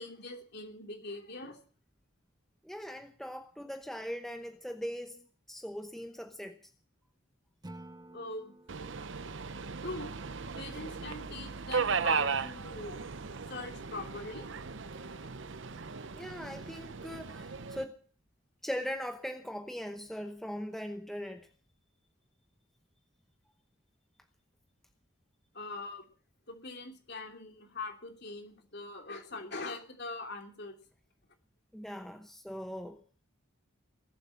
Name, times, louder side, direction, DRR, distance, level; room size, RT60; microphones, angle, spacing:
voice 1, 0.0-1.6 8.1-8.6 9.8-10.1 10.5-13.1 13.5-14.5 25.5-26.1 26.5-30.8, left 3 dB, 50° left, 3.1 m, -42 dB
voice 2, 2.6-6.6 8.9-9.3 16.1-18.0 18.6-21.5 31.7-33.0, equal, ahead, 0.9 m, -40 dB
Acoustic guitar / Strum, 7.6-10.8, right 1 dB, 20° right, 1.1 m, -53 dB
Subway metro underground, 8.7-17.8, right 5 dB, 55° right, 0.7 m, -36 dB
20.5 x 7.9 x 8.4 m
head